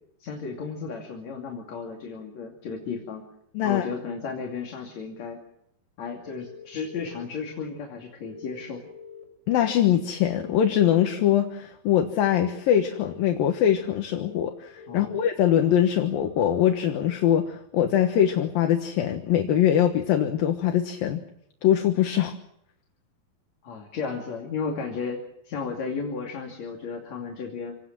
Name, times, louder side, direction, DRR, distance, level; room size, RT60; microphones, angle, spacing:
voice 1, 0.2-3.2 3.6-5.4 6.0-8.8 14.9-15.2 23.6-25.2 25.4-27.8, left 5 dB, 50° left, 1 dB, 3.7 m, -34 dB
voice 2, 3.5-3.9 9.5-21.2 21.6-22.4, left 10 dB, 75° left, 5 dB, 3.0 m, -22 dB
sound 1, 6.3-7.3 8.2-9.2 10.2-11.2 12.2-13.2 14.2-15.2 16.1-17.2 18.1-18.2, left 6 dB, 20° left, 6.2 m, -45 dB
27.5 x 18.5 x 7.6 m, 0.76 s
omnidirectional pair, 4.3 m